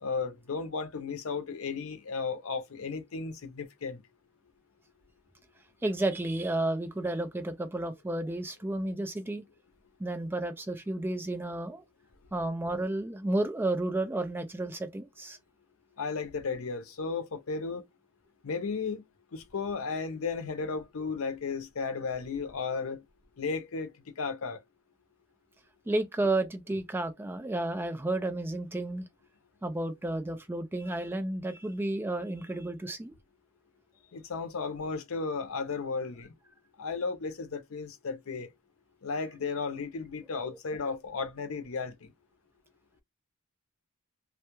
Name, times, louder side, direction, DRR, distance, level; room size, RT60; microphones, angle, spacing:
voice 1, 0.0-4.0 16.0-17.8 18.4-19.0 19.3-23.0 23.4-24.6 34.1-36.3 36.8-38.5 39.0-42.1, left 4 dB, 80° left, 0.6 m, -34 dB
voice 2, 5.8-9.4 10.0-11.8 12.3-15.4 25.9-29.1 29.6-33.1 40.4-40.5, right 2 dB, 10° right, 0.3 m, -32 dB
2.2 x 2.0 x 2.9 m
head